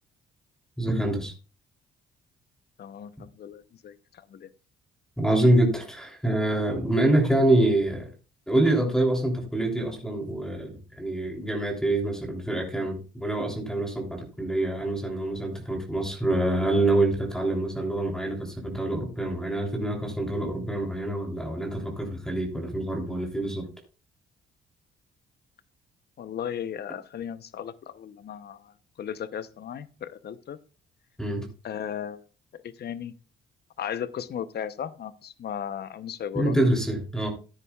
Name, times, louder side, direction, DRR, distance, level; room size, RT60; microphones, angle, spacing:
voice 1, 0.8-1.3 5.2-8.1 8.5-23.6 31.2-31.5 36.3-37.3, right 1 dB, 5° left, 1 dB, 3.2 m, -26 dB
voice 2, 2.8-4.5 26.2-30.6 31.6-32.2 32.5-33.1 33.8-36.7, left 9 dB, 55° left, 14 dB, 0.8 m, -36 dB
14.0 x 9.8 x 2.4 m, 0.35 s
cardioid pair, 90°, 20 cm